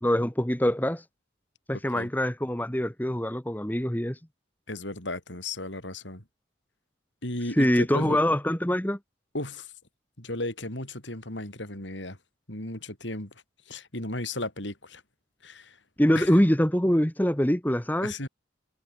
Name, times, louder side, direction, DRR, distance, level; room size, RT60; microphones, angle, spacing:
voice 1, 0.0-1.0 1.7-4.2 7.6-9.0 16.0-18.1, equal, 10° left, 1.5 m, -24 dB
voice 2, 4.7-6.2 7.2-8.2 9.3-9.7 10.2-12.2 12.5-13.3 13.7-15.0 15.4-15.8 16.1-16.3 18.0-18.3, left 2 dB, 70° left, 7.4 m, -35 dB
head